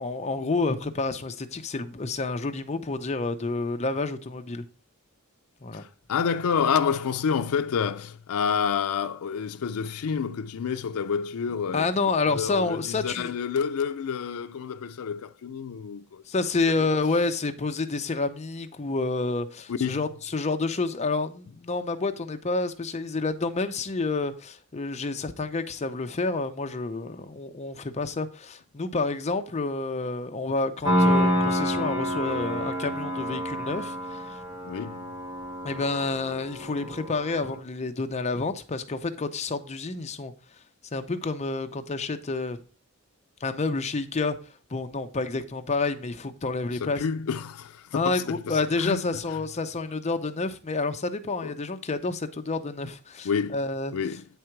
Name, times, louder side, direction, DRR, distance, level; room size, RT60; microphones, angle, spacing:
voice 1, 0.0-4.6 5.6-5.8 11.7-13.3 16.3-34.4 35.6-40.3 40.9-42.6 43.4-44.4 44.7-47.0 47.9-53.9, left 3 dB, 30° left, 0.6 m, -29 dB
voice 2, 5.7-11.9 12.3-16.2 19.7-20.0 34.6-35.1 46.7-49.0 51.4-51.5 53.2-53.6 53.9-54.3, left 6 dB, 75° left, 0.4 m, -29 dB
Piano, 30.8-37.6, equal, 25° right, 2.3 m, -28 dB
9.1 x 3.8 x 4.5 m
head